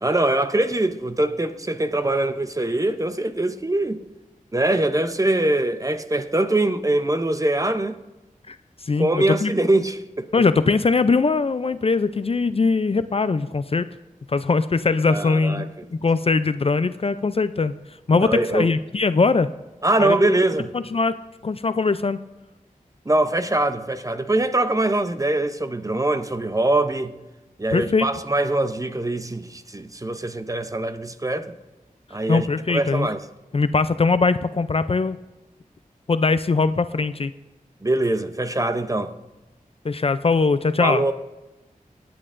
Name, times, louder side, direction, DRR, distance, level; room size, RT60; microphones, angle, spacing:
voice 1, 0.0-4.0 4.5-8.0 9.0-10.3 15.1-15.9 18.1-18.7 19.8-20.7 23.1-27.2 27.6-31.5 32.1-33.2 37.8-39.1 40.8-41.1, right 2 dB, 25° right, 0.6 m, -23 dB
voice 2, 8.8-9.5 10.3-13.9 14.3-15.7 16.0-17.7 18.1-19.5 20.0-20.2 20.7-22.2 27.7-28.1 32.3-33.1 33.5-35.2 36.1-37.3 39.8-41.0, left 4 dB, 45° left, 0.4 m, -21 dB
22.5 x 8.7 x 2.5 m
wide cardioid pair, 70°, 14 cm